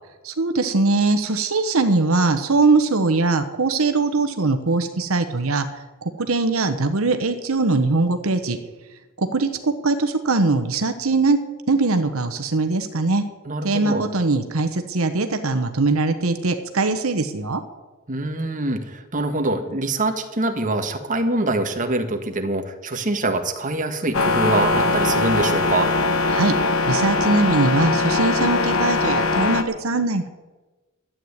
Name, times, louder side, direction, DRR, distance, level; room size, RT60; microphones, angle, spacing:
voice 1, 0.2-5.7 6.0-8.6 9.2-11.4 11.7-13.2 13.6-17.6 26.3-26.5 26.9-30.3, right 3 dB, 75° right, 8 dB, 1.1 m, -21 dB
voice 2, 13.4-14.0 18.1-25.9, right 2 dB, 40° right, 6 dB, 1.6 m, -24 dB
sound 1, 24.1-29.6, left 3 dB, 75° left, 1.3 m, -21 dB
12.5 x 8.9 x 9.6 m, 1.2 s
head